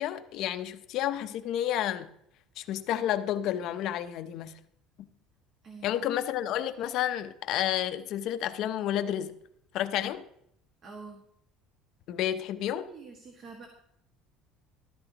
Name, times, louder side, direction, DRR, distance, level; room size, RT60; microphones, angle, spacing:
voice 1, 0.0-2.1 2.6-4.5 5.8-9.3 9.7-10.2 12.1-12.9, left 11 dB, 50° left, 0.7 m, -30 dB
voice 2, 5.6-6.0 10.8-11.2 12.7-13.7, right 4 dB, 30° right, 1.7 m, -46 dB
14.5 x 13.0 x 2.9 m
cardioid pair, 175°, 0 cm